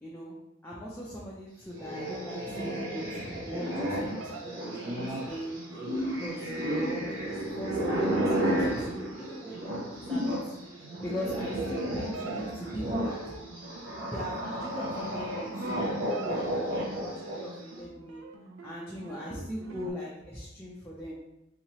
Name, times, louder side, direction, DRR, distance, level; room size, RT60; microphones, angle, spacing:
voice 1, 0.0-5.0 5.3-5.6 6.0-10.4 11.0-13.3 14.1-18.2 18.6-21.2, equal, 10° left, -6 dB, 0.5 m, -40 dB
sound 1, 1.7-10.5 10.8-17.6, right 1 dB, 60° right, 1.0 m, -32 dB
sound 2, 4.0-19.9, right 3 dB, 85° right, 0.5 m, -44 dB
3.6 x 3.0 x 3.0 m, 0.88 s
head